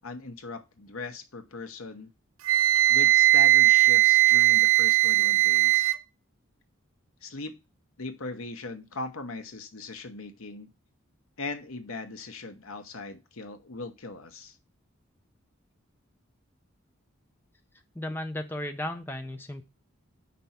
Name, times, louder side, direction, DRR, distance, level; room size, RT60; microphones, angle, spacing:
voice 1, 0.0-2.1 2.9-5.9 7.2-7.6 8.0-10.7 11.4-14.6, left 3 dB, 85° left, 8 dB, 1.1 m, -39 dB
Wind instrument woodwind instrument, 2.5-6.0, right 16 dB, 85° right, 0.5 m, -19 dB
voice 2, 18.0-19.6, left 1 dB, 10° left, 6 dB, 0.5 m, -34 dB
5.3 x 4.2 x 5.8 m, 0.27 s
head